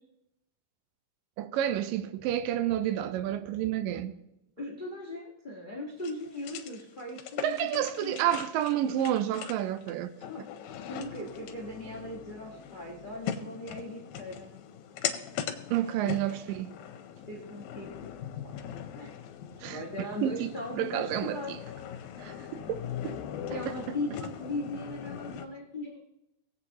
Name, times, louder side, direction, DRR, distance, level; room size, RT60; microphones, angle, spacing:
voice 1, 1.4-4.2 7.4-10.5 15.7-16.7 19.6-20.5 20.8-21.6 22.2-23.2 23.5-24.0, right 11 dB, 80° right, 2.2 m, -30 dB
voice 2, 4.6-8.5 10.9-14.5 16.0-16.1 17.2-17.9 18.4-18.5 18.9-19.2 19.7-21.5 22.5-22.7 23.5-26.0, left 1 dB, 65° left, 0.4 m, -39 dB
sound 1, 6.0-25.5, left 9 dB, 90° left, 2.6 m, -40 dB
20.0 x 8.0 x 2.9 m
omnidirectional pair, 4.0 m